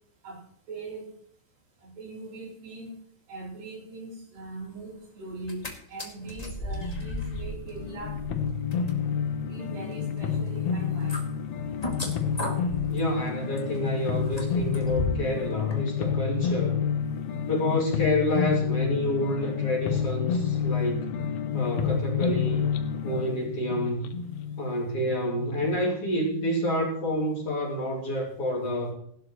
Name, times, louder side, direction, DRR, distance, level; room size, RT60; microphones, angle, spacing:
voice 1, 0.7-1.1 1.8-3.0 3.3-8.2 9.5-11.3, right 2 dB, 70° right, -2 dB, 5.3 m, -40 dB
sound 1, 5.3-5.7 6.0-15.4 15.7-15.8, left 1 dB, 20° left, 1.1 m, -37 dB
sound 2, 6.7-25.8, left 7 dB, 75° left, 1.6 m, -29 dB
voice 2, 12.9-16.8 17.5-21.1 21.5-22.7 23.0-24.1 24.6-28.9, left 1 dB, 45° left, -1 dB, 3.0 m, -28 dB
17.5 x 12.0 x 3.1 m, 0.64 s
omnidirectional pair, 4.2 m